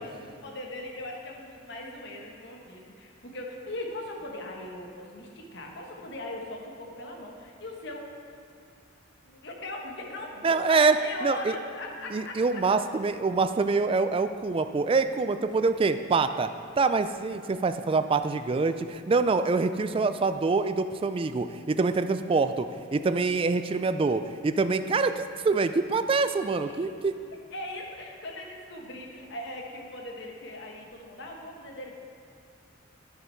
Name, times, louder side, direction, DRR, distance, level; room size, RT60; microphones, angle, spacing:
voice 1, 0.0-8.4 9.2-12.6 26.7-26.9 27.5-32.0, left 1 dB, 60° left, 0 dB, 1.2 m, -39 dB
voice 2, 10.4-11.0 11.2-11.5 12.1-16.5 16.8-22.7 22.9-27.2, right 4 dB, 25° right, 10 dB, 0.3 m, -25 dB
10.5 x 6.6 x 4.5 m, 2.5 s
head